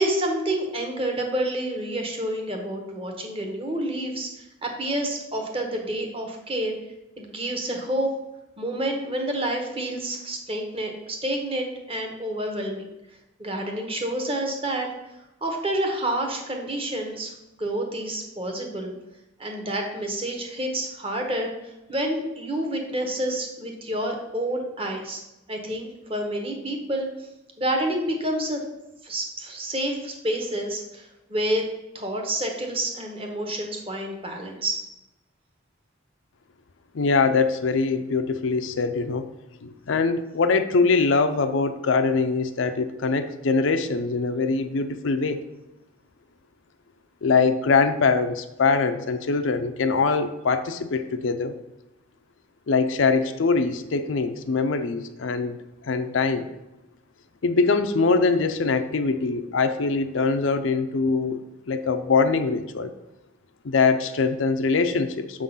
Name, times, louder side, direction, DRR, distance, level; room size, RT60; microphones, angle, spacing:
voice 1, 0.0-6.8 7.2-8.1 8.6-12.9 13.4-14.9 15.4-17.3 17.6-18.9 19.4-25.2 25.5-27.1 27.6-28.6 29.0-31.6 31.9-34.8, right 1 dB, 30° right, 2 dB, 1.1 m, -28 dB
voice 2, 36.9-39.3 39.6-45.4 47.2-51.6 52.7-55.6 55.8-56.5 57.4-61.4 61.7-62.9 63.6-65.4, left 4 dB, 70° left, 9 dB, 0.5 m, -23 dB
6.7 x 3.8 x 5.5 m, 0.95 s
head